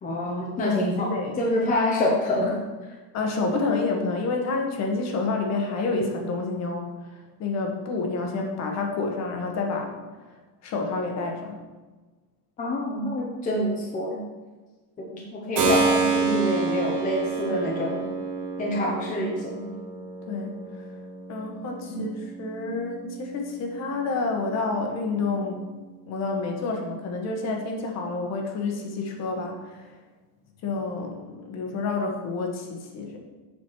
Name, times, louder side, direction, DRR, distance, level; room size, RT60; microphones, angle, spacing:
voice 1, 0.0-1.1 1.4-2.6 12.6-14.2 15.0-18.0 18.6-19.7 21.9-22.1, left 1 dB, 20° left, -3 dB, 0.9 m, -26 dB
voice 2, 0.6-1.4 3.1-6.9 7.4-9.9 10.6-11.6 20.3-20.8 21.3-25.6 26.1-29.9 30.6-33.2, left 3 dB, 40° left, 2 dB, 1.3 m, -29 dB
Keyboard (musical), 15.5-24.2, right 4 dB, 85° right, 2.4 m, -29 dB
7.6 x 6.1 x 4.6 m, 1.3 s
cardioid pair, 175°, 43 cm